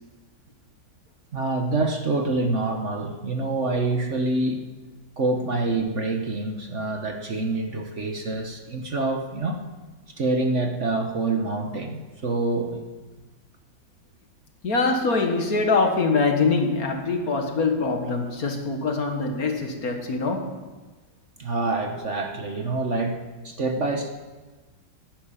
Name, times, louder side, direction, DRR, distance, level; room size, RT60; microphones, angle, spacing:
voice 1, 1.3-4.6 5.2-9.6 10.2-12.8 21.4-24.1, right 2 dB, 45° right, 4 dB, 1.3 m, -26 dB
voice 2, 14.6-20.5, left 4 dB, 55° left, 4 dB, 1.9 m, -24 dB
11.5 x 10.5 x 8.9 m, 1.3 s
omnidirectional pair, 2.0 m